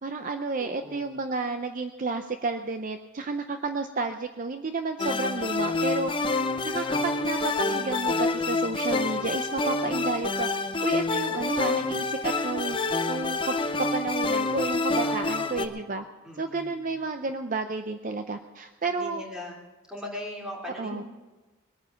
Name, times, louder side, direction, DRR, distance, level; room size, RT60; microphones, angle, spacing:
voice 1, 0.0-6.1 6.6-10.5 10.8-12.8 13.1-16.0 16.4-19.2 20.8-21.0, right 3 dB, 40° right, 7 dB, 0.6 m, -31 dB
voice 2, 0.6-1.2 15.0-15.8 16.2-16.9 18.8-19.6 19.9-21.0, left 1 dB, 5° right, -2 dB, 2.9 m, -41 dB
sound 1, 5.0-15.7, left 3 dB, 25° left, 0.8 m, -27 dB
21.0 x 9.4 x 5.8 m, 1.2 s
head